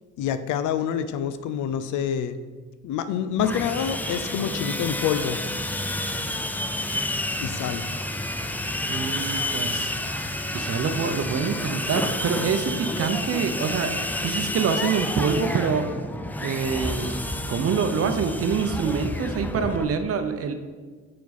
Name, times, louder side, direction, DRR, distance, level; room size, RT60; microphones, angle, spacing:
voice 1, 0.2-2.4 2.8-5.4 7.4-7.8, left 8 dB, 80° left, 12 dB, 0.5 m, -27 dB
Sawing, 3.4-19.8, left 1 dB, 5° left, 0.4 m, -30 dB
voice 2, 8.9-9.9 10.5-15.9 16.4-17.2 17.5-20.5, right 6 dB, 50° right, 8 dB, 0.7 m, -26 dB
6.3 x 4.6 x 4.2 m, 1.5 s
cardioid pair, 90°, 30 cm